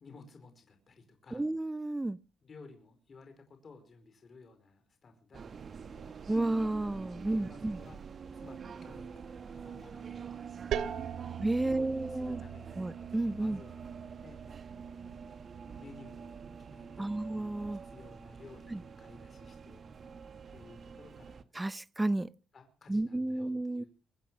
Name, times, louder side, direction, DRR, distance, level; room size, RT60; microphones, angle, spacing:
voice 1, 0.0-1.4 2.4-6.2 7.2-8.0 8.3-10.3 11.6-12.9 13.4-13.9 14.2-14.4 15.8-17.2 17.8-19.8 20.5-21.4 22.5-23.9, left 4 dB, 45° left, 4.9 m, -55 dB
voice 2, 1.3-2.2 6.3-7.8 11.4-12.4 12.8-13.6 17.0-17.8 18.7-18.8 21.5-22.3 22.9-23.8, right 2 dB, 15° right, 0.8 m, -32 dB
sound 1, 5.3-21.4, right 6 dB, 45° right, 1.3 m, -46 dB
sound 2, 10.7-16.2, right 9 dB, 75° right, 2.6 m, -42 dB
24.5 x 9.1 x 6.4 m
cardioid pair, 90°, 0 cm